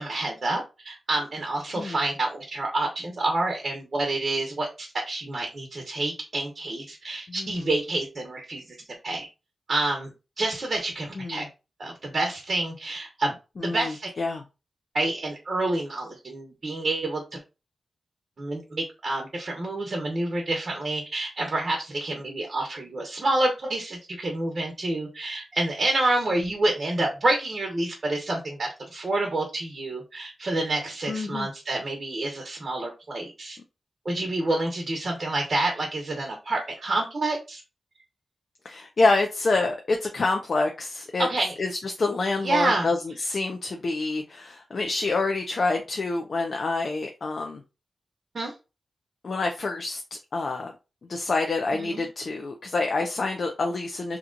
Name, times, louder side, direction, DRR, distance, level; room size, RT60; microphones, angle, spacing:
voice 1, 0.0-8.8 9.0-9.3 9.7-10.1 10.4-11.5 11.8-14.1 14.9-17.4 18.4-33.6 34.0-37.6 41.2-41.5 42.4-42.9 48.3-48.5 51.7-52.0, right 2 dB, 50° right, 0.9 m, -28 dB
voice 2, 7.3-7.7 11.2-11.5 13.6-14.4 31.1-31.5 38.6-41.3 41.6-47.6 49.2-50.0 50.3-50.7 51.1-54.2, left 3 dB, 60° left, 0.5 m, -27 dB
2.9 x 2.3 x 3.8 m
wide cardioid pair, 80°, 0 cm